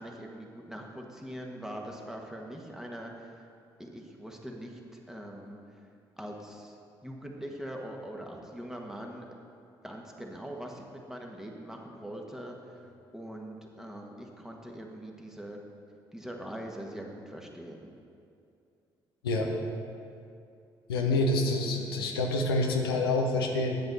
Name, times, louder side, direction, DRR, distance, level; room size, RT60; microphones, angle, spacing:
voice 1, 0.0-3.4 3.8-5.6 6.2-6.7 7.0-9.3 9.8-12.6 13.1-15.6 16.1-17.9, right 1 dB, 5° right, 0 dB, 1.5 m, -42 dB
voice 2, 20.9-23.8, left 2 dB, 85° left, 1 dB, 0.7 m, -27 dB
10.5 x 7.7 x 4.1 m, 2.5 s
hypercardioid pair, 45°, 12 cm